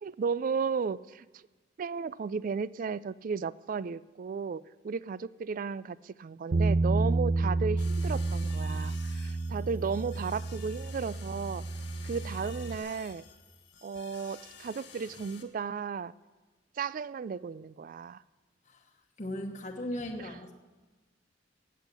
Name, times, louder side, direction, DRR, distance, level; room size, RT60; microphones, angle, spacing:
voice 1, 0.0-1.4 1.8-11.6 12.0-13.2 13.8-16.1 16.8-18.2 20.2-20.4, right 5 dB, 45° right, 19 dB, 0.3 m, -34 dB
Bass guitar, 6.5-12.8, right 3 dB, 70° right, 0.7 m, -30 dB
sound 1, 7.8-15.4, left 6 dB, 65° left, 1.7 m, -51 dB
voice 2, 19.2-20.5, left 1 dB, 40° left, 2 dB, 1.1 m, -37 dB
18.5 x 8.1 x 6.8 m, 1.3 s
head